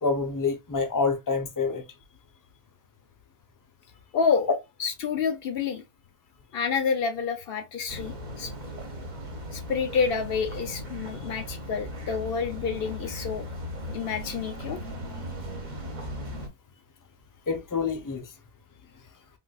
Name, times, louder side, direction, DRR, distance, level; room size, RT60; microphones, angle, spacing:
voice 1, 0.0-1.8 17.5-18.3, left 4 dB, 25° left, 0.5 m, -27 dB
voice 2, 4.1-4.5 4.8-5.8 6.5-8.5 9.5-13.5 13.9-14.8, left 6 dB, 65° left, 0.8 m, -28 dB
sound 1, 7.9-16.5, equal, 45° right, 1.1 m, -37 dB
3.8 x 2.5 x 2.3 m
omnidirectional pair, 1.1 m